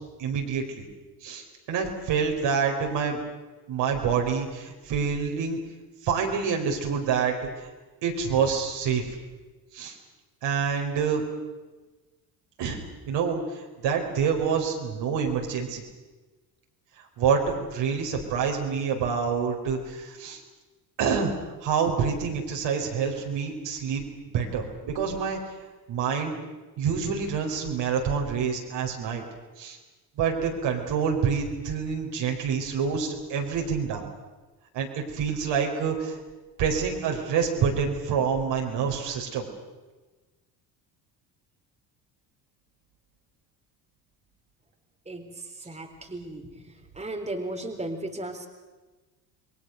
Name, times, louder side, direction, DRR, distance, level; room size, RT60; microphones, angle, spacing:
voice 1, 0.2-0.8 1.2-3.2 3.7-5.6 6.0-7.5 8.0-9.1 9.7-9.9 10.4-11.2 12.6-12.8 13.1-15.8 17.2-20.4 21.0-21.3 21.6-24.0 24.3-25.4 25.9-26.3 26.8-29.2 29.6-29.8 30.2-34.0 34.7-36.2 36.6-39.5, right 6 dB, 55° right, 2 dB, 4.9 m, -27 dB
voice 2, 45.7-46.5 47.0-48.5, right 1 dB, 15° right, 3 dB, 3.6 m, -35 dB
28.5 x 22.0 x 6.5 m, 1.2 s
hypercardioid pair, 60°, 50 cm